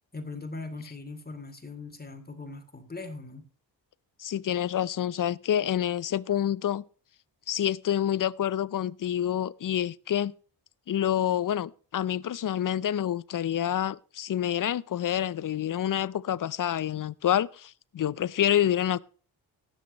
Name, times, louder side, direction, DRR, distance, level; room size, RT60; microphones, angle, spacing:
voice 1, 0.1-3.5, left 3 dB, 20° left, 2.7 m, -40 dB
voice 2, 4.2-6.8 7.5-10.3 10.9-19.0, left 10 dB, 45° left, 0.6 m, -27 dB
19.5 x 7.7 x 3.0 m
supercardioid pair, 55°, 45 cm